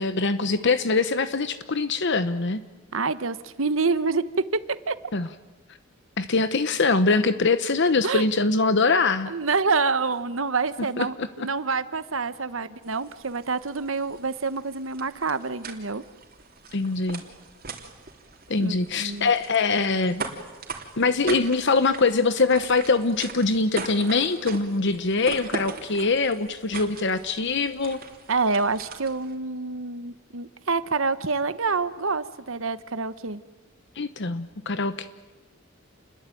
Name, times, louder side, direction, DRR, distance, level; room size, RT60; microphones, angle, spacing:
voice 1, 0.0-2.6 5.1-5.3 6.2-9.3 11.0-11.5 16.7-17.2 18.5-20.2 21.0-28.0 34.0-35.1, left 3 dB, 55° left, 11 dB, 1.0 m, -23 dB
voice 2, 2.9-4.2 4.5-4.6 4.9-5.0 8.0-8.3 9.3-11.2 11.4-16.0 18.6-19.3 28.3-33.4, right 4 dB, 65° right, 13 dB, 1.2 m, -27 dB
sound 1, 12.8-29.3, right 4 dB, 45° right, 3.3 m, -40 dB
29.5 x 21.5 x 9.2 m, 1.3 s
head